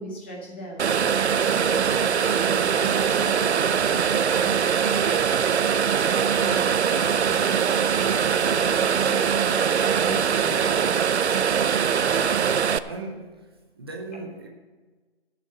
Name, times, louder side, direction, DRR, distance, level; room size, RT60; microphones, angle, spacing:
voice 1, 0.0-7.6 8.4-11.0 14.1-14.2, equal, 10° left, -2 dB, 0.8 m, -40 dB
sound 1, 0.8-12.8, right 7 dB, 75° right, 0.6 m, -22 dB
voice 2, 12.8-13.5 13.8-14.5, right 3 dB, 20° right, 2 dB, 0.7 m, -37 dB
12.5 x 6.7 x 6.7 m, 1.3 s
figure-of-eight pair, 160°, 34 cm